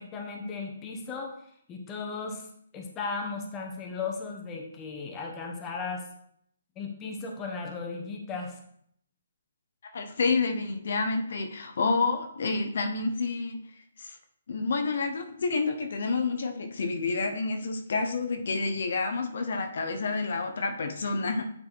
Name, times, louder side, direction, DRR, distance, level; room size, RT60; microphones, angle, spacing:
voice 1, 0.0-1.3 1.7-2.5 2.7-6.0 6.8-8.6, left 4 dB, 15° left, 1 dB, 1.1 m, -36 dB
voice 2, 9.9-13.6 14.0-14.2 14.5-21.4, left 4 dB, 65° left, 6 dB, 1.0 m, -29 dB
9.0 x 4.0 x 4.0 m, 0.67 s
hypercardioid pair, 160°, 0 cm